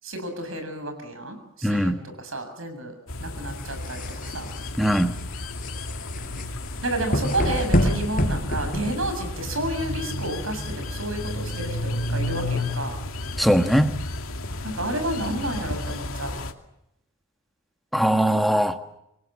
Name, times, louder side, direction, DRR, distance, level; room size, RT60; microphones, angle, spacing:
voice 1, 0.0-2.9 3.2-4.5 6.8-13.0 14.6-16.3, right 1 dB, 70° right, 7.3 m, -31 dB
voice 2, 1.6-2.0 4.8-5.1 13.4-13.9 17.9-18.8, equal, ahead, 1.5 m, -20 dB
sound 1, 3.1-16.5, left 2 dB, 75° left, 2.5 m, -32 dB
sound 2, 3.5-9.4, equal, 40° left, 5.0 m, -27 dB
27.0 x 22.0 x 7.5 m
head